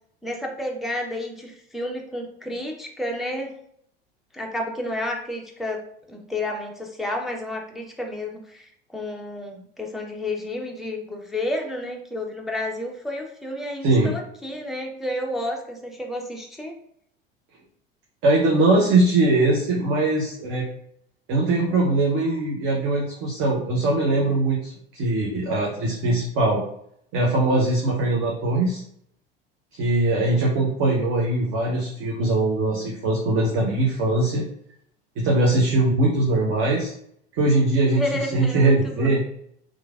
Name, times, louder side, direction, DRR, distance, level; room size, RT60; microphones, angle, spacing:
voice 1, 0.2-3.6 4.3-5.8 6.1-16.7 37.9-39.2, left 1 dB, ahead, 0 dB, 0.3 m, -31 dB
voice 2, 18.2-20.7 21.3-26.6 27.1-28.8 29.7-34.4 35.2-36.9 37.4-39.2, right 2 dB, 45° right, -2 dB, 0.7 m, -21 dB
3.1 x 2.3 x 2.3 m, 0.68 s
figure-of-eight pair, 75°, 30 cm